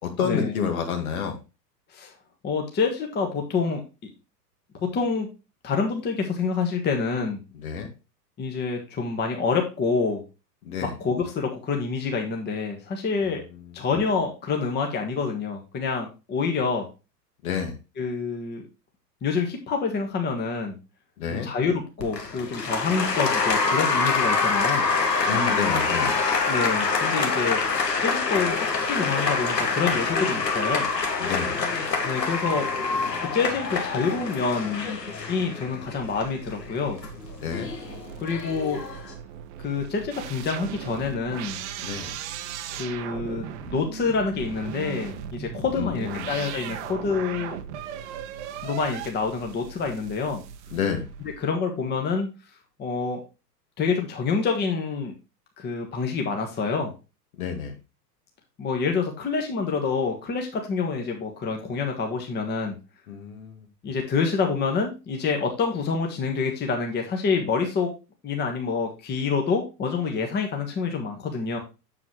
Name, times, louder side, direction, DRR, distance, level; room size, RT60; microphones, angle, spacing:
voice 1, 0.0-1.4 7.5-7.9 10.6-10.9 17.4-17.7 21.2-21.5 25.3-26.2 31.2-31.6 37.4-37.7 41.8-42.1 45.8-46.3 50.7-51.1 57.4-57.8 63.1-63.7, left 6 dB, 55° left, 5 dB, 2.1 m, -29 dB
voice 2, 2.4-3.8 4.8-5.3 5.6-7.4 8.4-10.2 10.8-13.4 13.7-16.9 18.0-18.6 19.2-20.8 21.3-24.8 26.5-27.6 28.0-30.9 32.0-34.9 35.3-37.0 38.2-38.8 39.6-41.6 42.7-47.6 48.6-50.4 51.4-52.3 52.8-53.2 53.8-55.1 55.6-56.9 58.6-62.8 63.8-67.9 68.2-71.6, left 5 dB, 20° left, 2 dB, 1.5 m, -27 dB
Applause, 22.0-39.1, left 4 dB, 75° left, 1.8 m, -26 dB
sound 1, 35.8-51.4, right 9 dB, 45° right, 0.9 m, -38 dB
7.5 x 7.1 x 3.2 m, 0.28 s
figure-of-eight pair, 100°, 50 cm